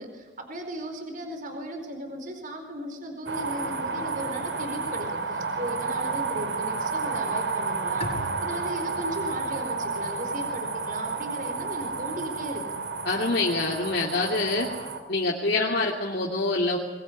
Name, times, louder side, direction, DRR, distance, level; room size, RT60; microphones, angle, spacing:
voice 1, 0.0-8.1 8.4-12.6 15.5-15.8, right 1 dB, 50° right, 5 dB, 4.4 m, -36 dB
sound 1, 3.3-15.0, right 4 dB, 70° right, 3.1 m, -31 dB
Bowed string instrument, 8.0-11.5, equal, 35° left, 5.7 m, -42 dB
voice 2, 13.0-14.7 15.1-16.8, left 2 dB, 60° left, -2 dB, 2.9 m, -25 dB
23.0 x 22.0 x 9.7 m, 1.1 s
head